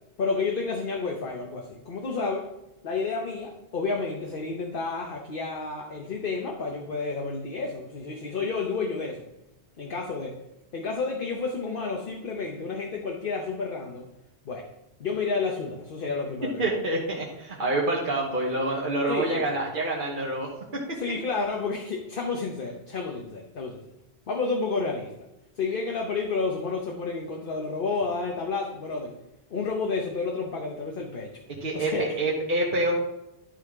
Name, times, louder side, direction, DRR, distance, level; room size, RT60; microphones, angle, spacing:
voice 1, 0.2-2.5 2.8-9.2 9.8-10.4 10.7-14.1 14.4-14.6 15.0-16.7 19.1-19.5 21.0-23.8 24.3-25.1 25.6-29.1 29.5-31.3 31.7-32.2, left 4 dB, 55° left, 1 dB, 1.1 m, -30 dB
voice 2, 16.6-21.0 31.6-32.9, right 2 dB, 50° right, -4 dB, 1.3 m, -27 dB
11.5 x 4.2 x 4.7 m, 0.92 s
omnidirectional pair, 1.1 m